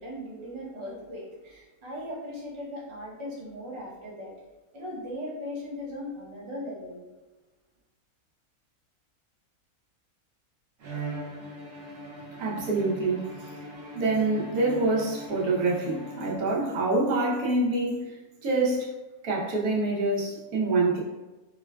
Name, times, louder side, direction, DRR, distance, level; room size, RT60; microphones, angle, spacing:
voice 1, 0.0-4.3 4.7-7.0, left 1 dB, 30° right, -5 dB, 0.5 m, -38 dB
Bowed string instrument, 10.8-16.8, right 2 dB, 60° right, 0.9 m, -40 dB
voice 2, 12.4-13.5 13.9-18.2 18.4-18.9 19.2-21.0, right 2 dB, 80° right, -5 dB, 1.3 m, -26 dB
4.6 x 2.2 x 2.2 m, 1.1 s
omnidirectional pair, 1.5 m